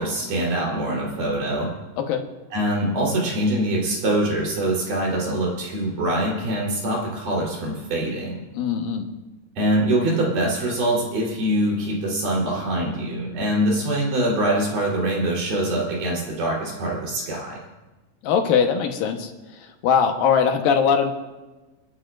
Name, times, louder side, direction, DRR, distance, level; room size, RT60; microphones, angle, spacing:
voice 1, 0.0-1.7 2.5-8.4 9.6-17.6, right 1 dB, 70° right, -4 dB, 5.5 m, -24 dB
voice 2, 8.5-9.0 18.2-19.3 19.6-21.1, left 7 dB, 80° left, 4 dB, 2.9 m, -21 dB
28.0 x 11.0 x 2.6 m, 1.1 s
omnidirectional pair, 4.0 m